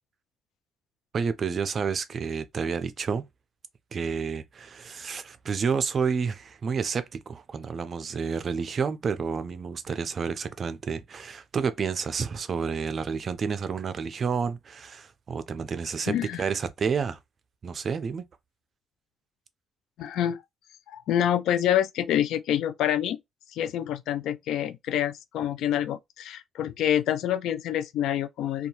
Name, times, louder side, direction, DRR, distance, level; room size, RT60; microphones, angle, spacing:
voice 1, 1.1-3.2 3.9-17.2 17.6-18.3, right 6 dB, 50° right, 0.4 m, -30 dB
voice 2, 16.1-16.4 20.0-20.4 20.9-23.2 23.5-28.7, left 10 dB, 85° left, 0.3 m, -27 dB
2.7 x 2.3 x 2.9 m
cardioid pair, 90°, 0 cm